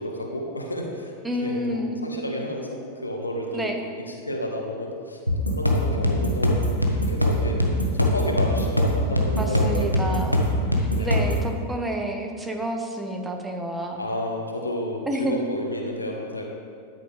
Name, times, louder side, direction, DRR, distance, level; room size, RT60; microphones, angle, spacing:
voice 1, 0.0-1.1 1.4-3.7 4.3-5.2 5.5-6.6 7.1-7.6 7.9-10.3 11.0-11.4 14.0-16.4, left 1 dB, 80° left, 1 dB, 1.5 m, -31 dB
voice 2, 1.2-2.0 3.5-3.8 9.4-10.5 10.8-14.0 15.1-15.4, equal, 10° right, 3 dB, 1.2 m, -29 dB
sound 1, 5.3-11.4, left 1 dB, 90° right, 1.2 m, -22 dB
13.5 x 10.5 x 3.4 m, 2.2 s
figure-of-eight pair, 90°, 0 cm